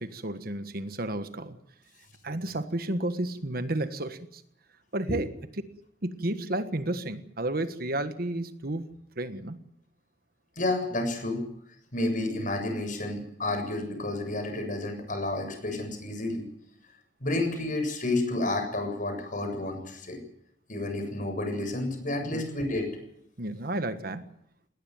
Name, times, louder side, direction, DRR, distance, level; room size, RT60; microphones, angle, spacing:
voice 1, 0.0-1.6 2.2-4.4 4.9-5.3 6.0-8.9 9.2-9.6 22.3-22.5 23.4-24.3, right 1 dB, 55° right, 10 dB, 1.5 m, -32 dB
voice 2, 10.6-11.4 11.9-16.4 17.2-20.2 20.7-22.9, left 2 dB, 50° left, 5 dB, 7.3 m, -30 dB
19.5 x 19.0 x 9.3 m, 0.73 s
head